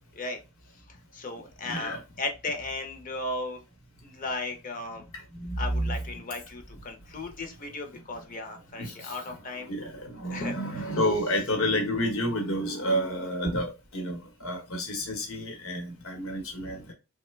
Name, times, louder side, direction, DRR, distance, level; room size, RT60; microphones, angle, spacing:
voice 1, 0.9-3.6 4.0-5.1 5.6-9.7 10.3-10.6 15.0-15.1 16.7-16.8, left 2 dB, 40° left, 0.6 m, -36 dB
voice 2, 1.6-2.0 5.3-5.9 8.8-9.1 9.6-16.9, equal, 80° left, 1.0 m, -30 dB
3.1 x 2.1 x 3.1 m
head